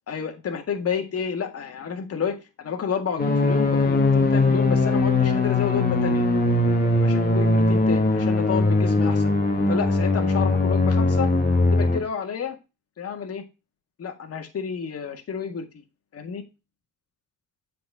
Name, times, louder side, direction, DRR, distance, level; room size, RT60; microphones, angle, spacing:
voice 1, 0.1-6.3 7.0-9.3 9.7-11.3 11.7-12.6 13.0-13.4 14.0-15.7 16.1-16.4, left 7 dB, 50° left, 5 dB, 1.8 m, -30 dB
sound 1, 3.2-12.0, left 2 dB, 30° left, 1.8 m, -20 dB
7.7 x 4.4 x 5.4 m, 0.27 s
cardioid pair, 90°, 30 cm